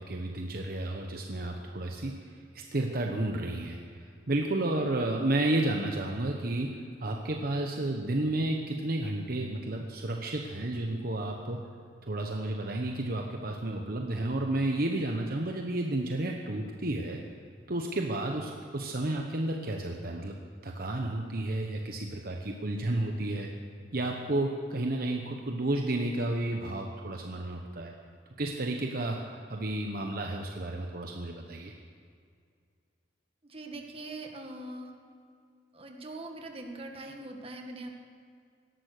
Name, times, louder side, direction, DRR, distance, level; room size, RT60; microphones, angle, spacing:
voice 1, 0.0-2.1 2.5-6.7 7.0-11.6 12.0-17.2 17.7-20.4 20.6-23.5 23.9-27.9 28.4-31.7, right 1 dB, 55° right, 2 dB, 1.1 m, -31 dB
voice 2, 33.4-34.9 35.7-37.9, right 2 dB, 30° right, 2 dB, 1.8 m, -42 dB
17.5 x 12.5 x 6.7 m, 2.2 s
head